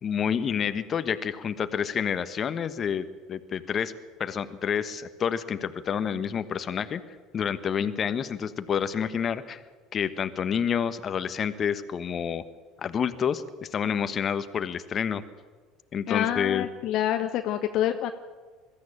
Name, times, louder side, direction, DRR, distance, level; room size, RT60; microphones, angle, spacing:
voice 1, 0.0-3.9 4.2-9.6 9.9-12.4 12.8-15.2 15.9-16.7, left 7 dB, 40° left, 12 dB, 1.3 m, -29 dB
voice 2, 16.1-18.1, left 11 dB, 55° left, 7 dB, 1.0 m, -27 dB
21.5 x 14.0 x 8.8 m, 1.4 s
hypercardioid pair, 70°, 0 cm